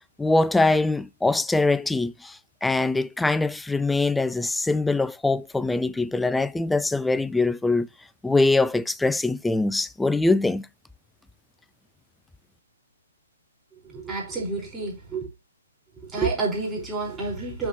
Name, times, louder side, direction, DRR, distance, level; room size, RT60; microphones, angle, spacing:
voice 1, 0.2-7.9 8.2-10.7, left 2 dB, 5° left, 0.3 m, -23 dB
voice 2, 13.8-15.3 16.0-17.7, right 3 dB, 10° right, 5.0 m, -29 dB
7.0 x 6.1 x 3.1 m
hypercardioid pair, 145°, 0 cm